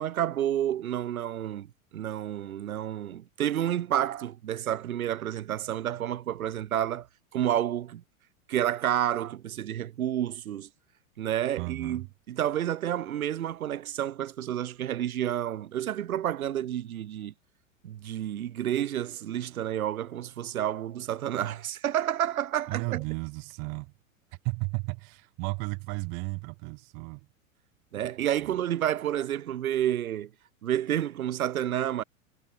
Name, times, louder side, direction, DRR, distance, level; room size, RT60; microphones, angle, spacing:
voice 1, 0.0-7.1 7.3-8.0 8.5-10.7 11.2-17.3 17.8-23.0 27.9-30.3 30.6-32.0, right 11 dB, 90° right, 0.7 m, -30 dB
voice 2, 11.6-12.1 22.7-23.9 24.4-27.3 28.4-28.6, right 34 dB, 30° right, 0.4 m, -34 dB
hypercardioid pair, 105°, 41 cm